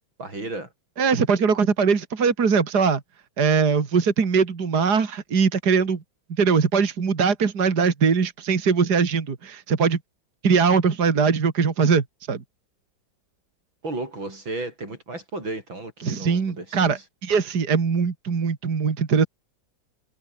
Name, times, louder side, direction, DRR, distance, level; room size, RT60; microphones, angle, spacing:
voice 1, 0.2-0.7 13.8-17.0, right 2 dB, 90° right, 8.8 m, -33 dB
voice 2, 1.0-3.0 3.4-6.0 6.4-10.0 10.4-12.4 16.0-19.3, right 5 dB, 55° right, 2.7 m, -21 dB
omnidirectional pair, 2.1 m